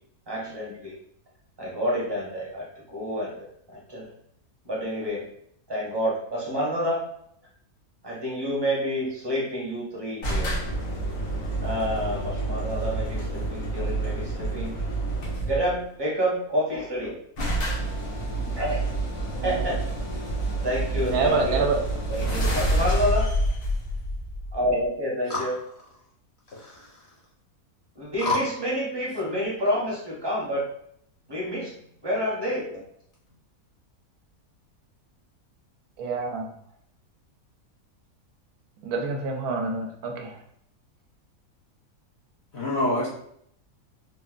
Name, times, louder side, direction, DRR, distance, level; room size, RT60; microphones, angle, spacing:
voice 1, 0.3-1.0 1.6-3.3 3.7-4.1 4.6-5.2 5.7-7.0 8.0-10.5 11.6-14.7 15.4-17.1 18.5-18.8 19.4-19.8 20.6-21.6 22.1-23.3 24.5-25.6 28.0-30.6 31.3-31.7 32.0-32.8, equal, 25° right, -5 dB, 0.6 m, -28 dB
sound 1, 10.2-15.7 16.7-16.8 17.0-17.1 17.4-24.8, right 1 dB, 90° left, 1.4 m, -28 dB
voice 2, 21.0-21.8 36.0-36.4 38.8-40.3, right 4 dB, 80° right, 2 dB, 1.1 m, -26 dB
voice 3, 42.5-43.1, left 2 dB, 55° left, -4 dB, 0.8 m, -25 dB
3.9 x 2.1 x 2.4 m, 0.70 s
omnidirectional pair, 1.6 m